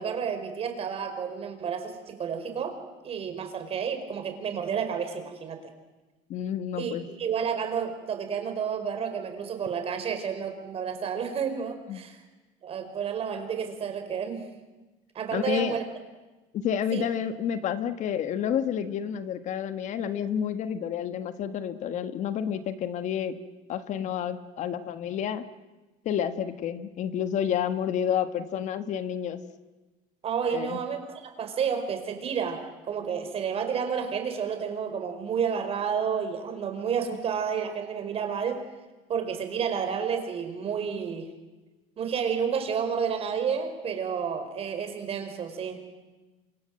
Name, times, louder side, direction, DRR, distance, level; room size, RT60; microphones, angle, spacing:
voice 1, 0.0-2.8 3.0-5.6 6.7-12.2 12.6-14.4 15.1-15.8 16.9-17.1 30.2-38.6 39.1-41.3 42.0-45.8, right 7 dB, 40° right, 7 dB, 4.9 m, -30 dB
voice 2, 6.3-7.1 11.9-12.0 15.3-15.8 16.5-23.3 23.7-25.4 26.0-29.4 30.5-30.8, left 8 dB, 50° left, 10 dB, 1.6 m, -30 dB
28.0 x 26.5 x 7.8 m, 1.2 s
cardioid pair, 130°, 16 cm